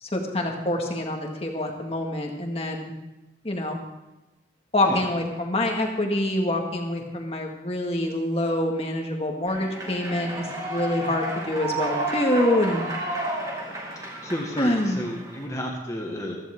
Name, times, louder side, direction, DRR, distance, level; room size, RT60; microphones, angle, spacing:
voice 1, 0.0-2.9 3.4-3.8 4.7-12.8 14.6-15.1, left 1 dB, 30° left, 2 dB, 2.0 m, -26 dB
Human voice / Clapping / Cheering, 9.5-15.4, right 1 dB, 20° right, 2.1 m, -32 dB
voice 2, 13.9-16.4, equal, 15° left, 0 dB, 1.7 m, -32 dB
15.5 x 14.5 x 3.7 m, 1.0 s
head